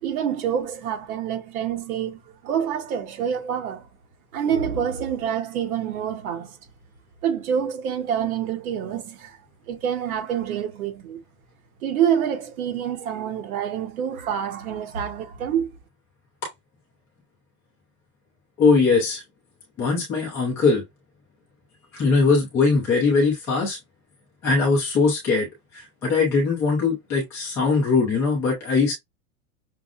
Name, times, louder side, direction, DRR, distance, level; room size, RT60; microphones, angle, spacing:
voice 1, 0.0-3.8 4.3-6.6 7.2-9.4 9.7-11.2 11.8-15.8, right 8 dB, 70° right, 1.0 m, -27 dB
voice 2, 18.6-19.2 19.8-20.8 21.9-23.8 24.4-25.5 25.7-28.9, left 4 dB, 5° left, 0.4 m, -21 dB
6.1 x 2.0 x 2.4 m
supercardioid pair, 170°, 45 cm